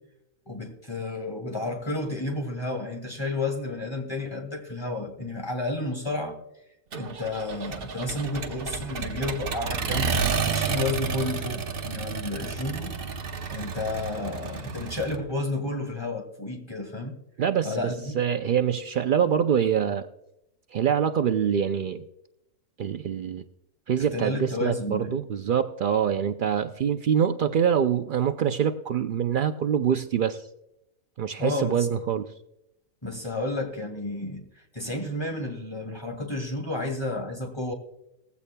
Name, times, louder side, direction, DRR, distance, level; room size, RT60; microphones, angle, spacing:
voice 1, 0.5-6.4 6.9-13.0 13.5-17.2 17.6-18.2 24.0-25.2 31.4-31.9 33.0-34.5 34.7-37.7, left 2 dB, 20° left, 3 dB, 2.2 m, -31 dB
Accelerating revving vroom, 6.9-15.2, right 5 dB, 45° right, 0.9 m, -31 dB
voice 2, 17.4-20.1 20.7-22.0 22.8-23.4 23.9-30.5 31.2-32.3, right 8 dB, 90° right, 8 dB, 0.4 m, -25 dB
18.5 x 15.5 x 2.2 m, 0.86 s
omnidirectional pair, 1.5 m